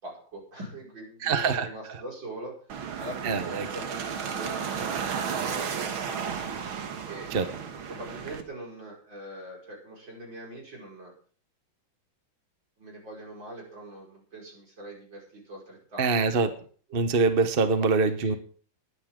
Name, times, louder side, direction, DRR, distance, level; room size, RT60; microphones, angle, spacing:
voice 1, 0.0-2.5 3.0-6.0 6.2-6.5 7.1-7.3 7.9-11.1 12.8-16.2 16.5-16.6 16.9-17.2 18.0-18.3, right 1 dB, 65° right, -2 dB, 6.2 m, -43 dB
voice 2, 1.2-1.7 3.2-3.7 7.3-7.5 16.0-16.5 16.9-18.4, right 4 dB, 40° right, 9 dB, 0.9 m, -24 dB
sound 1, 2.7-8.4, right 7 dB, 85° right, 2.2 m, -33 dB
21.0 x 9.9 x 3.8 m, 0.43 s
omnidirectional pair, 2.2 m